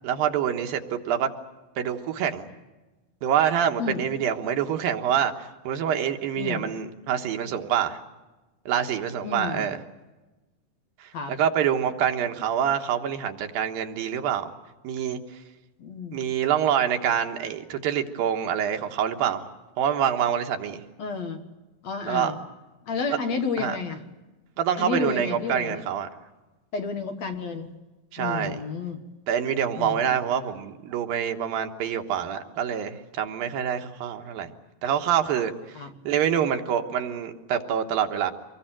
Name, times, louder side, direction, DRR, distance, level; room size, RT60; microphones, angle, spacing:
voice 1, 0.0-1.3 1.8-2.5 3.2-8.0 8.7-9.8 11.0-14.5 14.8-15.2 16.1-19.4 19.8-20.8 22.1-22.3 23.6-23.8 24.6-26.1 28.1-28.6 29.3-34.5 34.8-35.8 36.0-38.3, right 9 dB, 90° right, 5 dB, 3.1 m, -26 dB
voice 2, 9.2-9.7 11.1-11.3 15.8-16.2 21.0-21.4 21.8-22.4 22.9-24.0 24.8-25.8 26.7-27.7 28.2-29.0 29.7-30.2 35.8-35.9, left 5 dB, 55° left, 6 dB, 2.4 m, -31 dB
25.0 x 21.0 x 9.0 m, 1.2 s
omnidirectional pair, 4.0 m